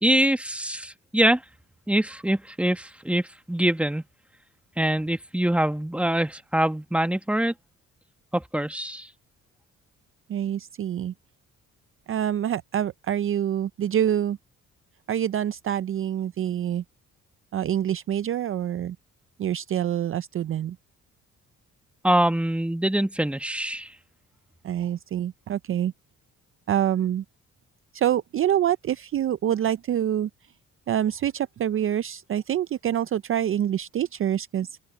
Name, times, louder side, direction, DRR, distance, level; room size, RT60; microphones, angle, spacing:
voice 1, 0.0-1.4 1.9-4.0 4.8-7.5 8.3-9.1 22.0-23.9, right 1 dB, 5° right, 1.5 m, -24 dB
voice 2, 10.3-11.1 12.1-14.4 15.1-16.8 17.5-19.0 19.4-20.8 24.6-25.9 26.7-27.2 27.9-30.3 30.9-34.8, right 10 dB, 45° right, 0.5 m, -26 dB
open air
cardioid pair, 90°, 30 cm